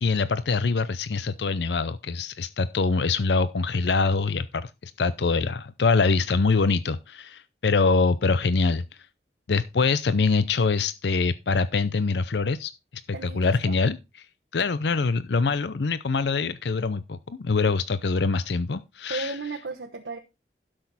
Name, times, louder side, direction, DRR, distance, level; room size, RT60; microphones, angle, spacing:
voice 1, 0.0-8.8 9.5-14.0 14.5-19.4, left 4 dB, 75° left, 0.6 m, -24 dB
voice 2, 13.1-13.7 19.1-20.2, right 3 dB, 90° right, 1.1 m, -34 dB
12.0 x 6.4 x 4.1 m
head